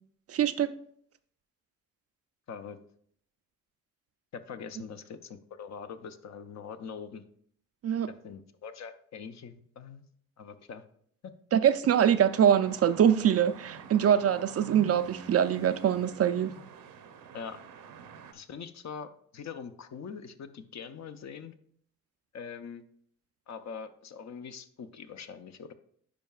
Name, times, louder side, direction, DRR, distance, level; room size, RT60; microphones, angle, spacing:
voice 1, 0.3-0.7 7.8-8.1 11.5-16.5, right 9 dB, 45° right, 0.4 m, -24 dB
voice 2, 2.5-2.8 4.3-7.2 8.2-10.0 10.4-10.8 11.2-11.3 17.3-17.6 18.3-21.5 22.3-22.8 23.5-25.7, left 6 dB, 50° left, 0.7 m, -43 dB
sound 1, 12.3-18.3, right 6 dB, 70° right, 0.8 m, -47 dB
10.0 x 4.6 x 2.4 m
supercardioid pair, 50°, 35 cm